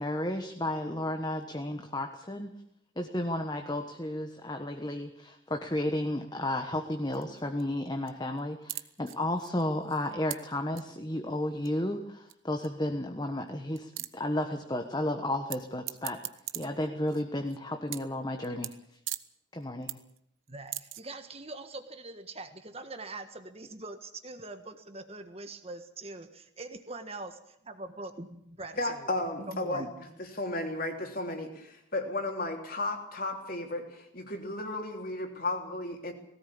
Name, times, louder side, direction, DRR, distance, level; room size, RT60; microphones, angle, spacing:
voice 1, 0.0-2.5 3.0-16.2 16.5-18.7 19.5-20.0, left 1 dB, 20° left, 5 dB, 1.3 m, -33 dB
sound 1, 7.1-7.6 7.9-8.1 8.4-8.5 8.7-10.4 10.8-10.9 11.6-11.7 12.3-12.4 12.6-12.7 12.9-13.0 13.5-13.6 13.8-14.1 15.5-15.6 15.9-17.6 17.9-18.1 18.4-18.7 19.1-19.2 19.6-20.2 20.5-21.0, right 16 dB, 75° right, 1.0 m, -38 dB
voice 2, 20.5-29.1 29.4-29.9, right 2 dB, 30° right, 8 dB, 1.5 m, -43 dB
voice 3, 28.8-29.9 30.4-36.1, left 2 dB, 45° left, 4 dB, 3.5 m, -34 dB
19.0 x 17.0 x 8.7 m, 0.75 s
head